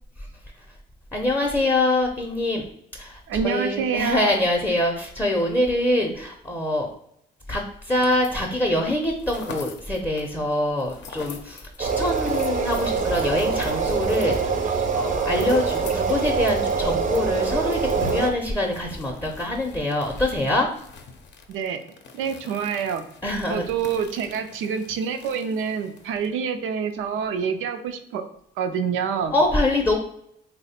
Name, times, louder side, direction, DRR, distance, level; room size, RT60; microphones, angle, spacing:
voice 1, 1.1-2.7 3.0-6.9 7.5-20.7 23.2-23.6 29.3-30.0, left 1 dB, 10° left, 0 dB, 0.5 m, -24 dB
voice 2, 3.3-4.4 21.5-21.8 22.1-23.0 23.5-28.2 28.6-29.3, right 7 dB, 90° right, 8 dB, 0.5 m, -27 dB
sound 1, 8.0-8.6 8.9-16.7 16.9-17.0 17.3-26.3, left 5 dB, 65° left, 0.6 m, -43 dB
sound 2, 11.8-18.3, right 5 dB, 40° right, 0.5 m, -24 dB
3.1 x 2.1 x 4.1 m, 0.70 s
cardioid pair, 90°, 20 cm